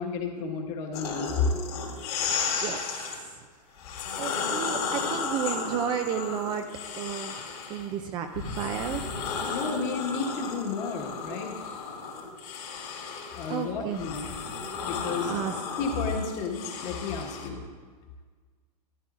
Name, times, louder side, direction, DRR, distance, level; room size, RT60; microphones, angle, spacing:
voice 1, 0.0-1.5 9.4-11.5 13.4-14.3 14.8-15.3 15.8-17.6, left 5 dB, 35° left, 1 dB, 1.4 m, -31 dB
sound 1, 0.9-3.2 3.8-7.9 8.3-17.5, left 5 dB, 70° left, 3.1 m, -34 dB
voice 2, 3.9-6.7 7.0-7.3 7.7-9.1 13.5-14.0 15.3-15.6, right 8 dB, 20° right, 6 dB, 0.3 m, -32 dB
14.0 x 9.9 x 2.5 m, 1.5 s
hypercardioid pair, 145°, 21 cm